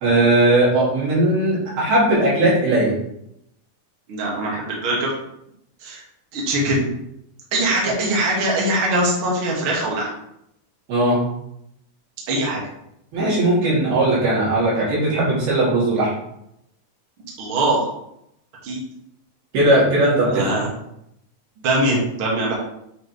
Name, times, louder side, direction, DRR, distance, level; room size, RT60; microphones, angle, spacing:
voice 1, 0.0-2.9 10.9-11.2 13.1-16.1 19.5-20.4, right 1 dB, 85° right, -7 dB, 4.8 m, -18 dB
voice 2, 4.1-5.1 5.8-6.0 6.3-6.9 7.5-10.1 12.3-12.6 17.4-17.9 18.6-18.8 20.2-20.7 21.6-22.5, right 1 dB, 45° right, -4 dB, 2.0 m, -22 dB
8.6 x 4.4 x 3.3 m, 0.77 s
omnidirectional pair, 4.3 m